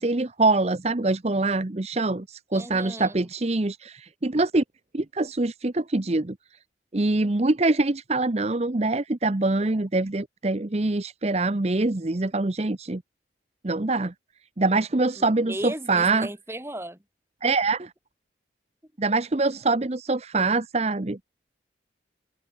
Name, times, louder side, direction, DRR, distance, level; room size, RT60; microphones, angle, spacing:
voice 1, 0.0-4.6 4.9-6.3 6.9-13.0 13.6-14.1 14.6-16.3 17.4-17.9 19.0-21.2, right 2 dB, 35° right, 0.8 m, -24 dB
voice 2, 2.5-3.3 15.2-17.0, right 1 dB, 15° right, 2.8 m, -36 dB
head